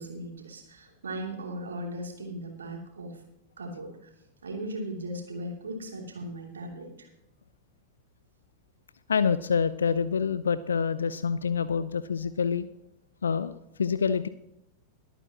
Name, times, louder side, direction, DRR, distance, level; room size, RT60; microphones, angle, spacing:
voice 1, 0.0-3.2 3.6-4.1 4.4-7.1, right 1 dB, 70° right, 2 dB, 3.0 m, -38 dB
voice 2, 9.1-12.7 13.2-14.3, left 6 dB, 70° left, 14 dB, 0.4 m, -27 dB
21.5 x 9.1 x 3.0 m, 0.86 s
figure-of-eight pair, 90°, 0 cm